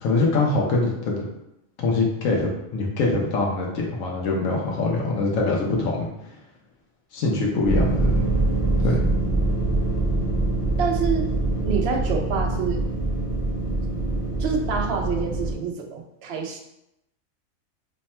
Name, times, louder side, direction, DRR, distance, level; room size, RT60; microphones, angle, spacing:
voice 1, 0.0-1.2 1.8-6.1 7.1-8.3 8.8-9.0, left 3 dB, 75° left, -1 dB, 1.2 m, -23 dB
sound 1, 7.6-15.5, right 2 dB, 30° left, 0.9 m, -24 dB
voice 2, 10.8-11.3 11.6-12.8 14.4-16.6, right 6 dB, 60° right, 2 dB, 0.8 m, -27 dB
3.4 x 2.2 x 4.2 m, 0.85 s
omnidirectional pair, 1.4 m